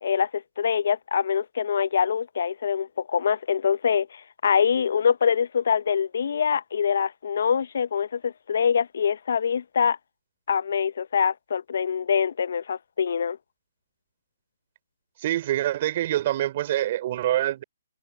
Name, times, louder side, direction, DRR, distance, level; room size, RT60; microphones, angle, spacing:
voice 1, 0.0-10.0 10.5-13.4, left 7 dB, 60° left, 0.7 m, -24 dB
voice 2, 15.2-17.6, right 13 dB, 40° right, 3.6 m, -25 dB
figure-of-eight pair, 140°, 0 cm